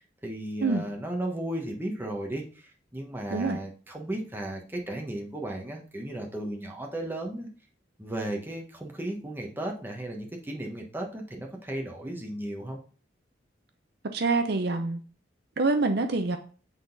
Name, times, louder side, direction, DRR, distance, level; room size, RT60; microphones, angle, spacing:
voice 1, 0.2-7.5 8.0-12.8, right 1 dB, 10° right, 1 dB, 1.3 m, -35 dB
voice 2, 14.1-15.0 15.6-16.4, right 3 dB, 60° right, 7 dB, 0.6 m, -25 dB
8.3 x 3.9 x 4.0 m, 0.40 s
head